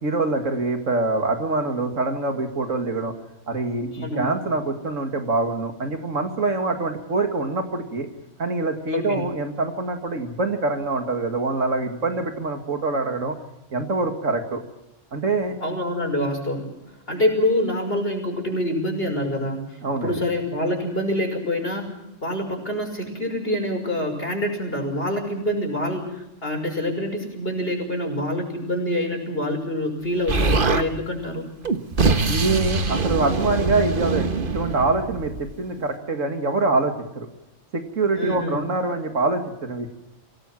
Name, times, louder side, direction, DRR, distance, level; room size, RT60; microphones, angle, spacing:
voice 1, 0.0-3.1 3.5-8.1 8.4-13.4 13.7-14.6 15.1-15.5 19.8-20.1 32.3-37.3 37.7-39.9, right 3 dB, 85° right, 5 dB, 2.5 m, -25 dB
voice 2, 15.6-16.7 17.1-19.6 20.0-21.9 22.2-31.5 38.2-38.6, left 1 dB, 50° left, 3 dB, 6.0 m, -26 dB
Explosion, 30.3-30.9 31.6-35.5, right 3 dB, 45° right, 1.5 m, -23 dB
25.0 x 18.0 x 7.5 m, 0.90 s
omnidirectional pair, 1.3 m